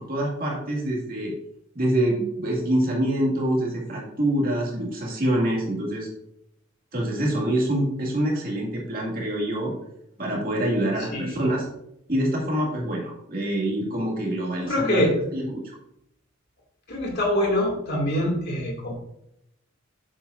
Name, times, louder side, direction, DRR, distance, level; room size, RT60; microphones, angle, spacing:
voice 1, 0.0-1.3 1.7-6.1 6.9-9.7 10.2-11.6 12.1-15.0 15.3-15.6, right 1 dB, 45° right, -2 dB, 2.3 m, -25 dB
voice 2, 11.0-11.4 14.6-15.1 16.9-18.9, left 1 dB, 55° left, -1 dB, 2.4 m, -24 dB
7.8 x 7.2 x 2.6 m, 0.78 s
head